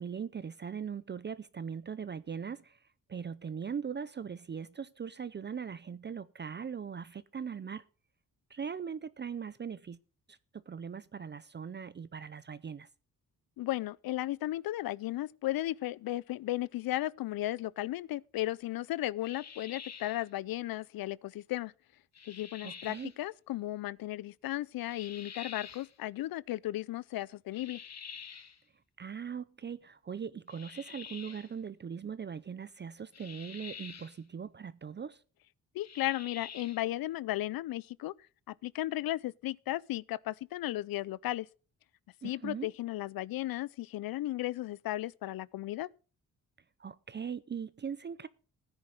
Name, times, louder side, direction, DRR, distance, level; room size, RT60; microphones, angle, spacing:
voice 1, 0.0-2.8 3.1-7.8 8.5-10.0 10.3-10.4 10.7-12.9 22.6-23.1 29.0-35.2 42.2-42.7 46.8-48.3, right 7 dB, 30° right, 0.5 m, -40 dB
voice 2, 13.6-21.7 22.3-27.8 35.7-38.1 38.5-41.5 42.2-45.9, left 15 dB, 80° left, 0.5 m, -35 dB
sound 1, 19.2-20.3 22.1-23.1 24.9-25.9 27.5-28.6 30.5-31.5 33.1-34.2 35.8-36.9, left 6 dB, 50° left, 1.6 m, -47 dB
15.5 x 9.8 x 3.9 m
cardioid pair, 120°, 35 cm